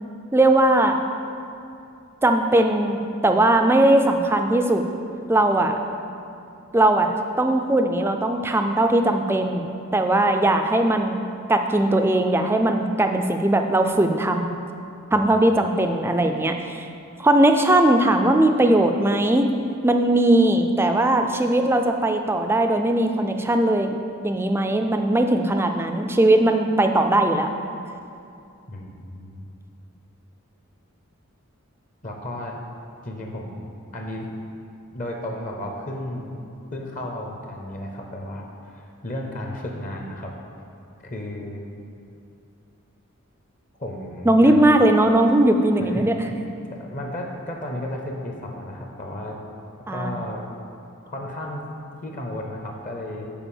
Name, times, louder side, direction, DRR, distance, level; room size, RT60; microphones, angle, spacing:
voice 1, 0.3-1.0 2.2-4.8 5.3-5.8 6.7-9.7 9.9-11.2 11.5-14.6 15.1-16.9 17.2-19.5 19.8-23.9 24.2-27.5 44.3-46.3 49.9-50.2, right 1 dB, 10° right, 5 dB, 0.4 m, -19 dB
voice 2, 28.7-29.5 32.0-32.6 33.0-33.7 33.9-34.3 34.9-36.4 36.7-40.3 41.0-41.6 43.8-44.7 45.8-46.1 46.8-49.4 49.9-50.4 51.0-53.3, left 1 dB, 35° left, 1 dB, 0.7 m, -33 dB
7.0 x 5.2 x 7.1 m, 2.6 s
head